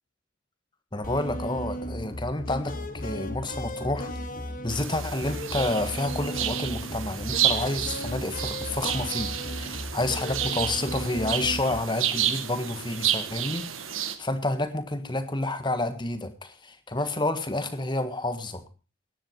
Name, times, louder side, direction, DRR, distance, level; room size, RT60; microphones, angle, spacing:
voice 1, 0.9-4.1 4.6-18.6, left 2 dB, 20° left, 10 dB, 1.5 m, -29 dB
sound 1, 1.0-11.8, equal, 45° left, 1.7 m, -35 dB
sound 2, 4.7-14.2, right 10 dB, 80° right, 1.7 m, -31 dB
18.0 x 10.5 x 4.7 m, 0.33 s
head